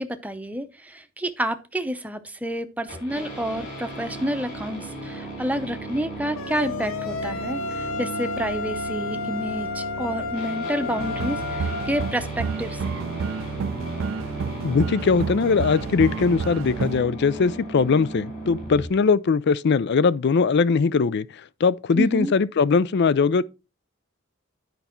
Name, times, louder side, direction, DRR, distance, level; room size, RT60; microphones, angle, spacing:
voice 1, 0.0-12.9 22.0-22.3, equal, 5° right, 0.7 m, -29 dB
sound 1, 2.9-18.9, right 1 dB, 40° left, 4.6 m, -36 dB
sound 2, 6.4-12.1, left 4 dB, 80° left, 0.8 m, -31 dB
sound 3, 11.0-17.0, right 6 dB, 70° right, 0.4 m, -30 dB
voice 2, 14.6-23.4, left 5 dB, 55° left, 0.4 m, -21 dB
9.4 x 5.4 x 4.3 m
head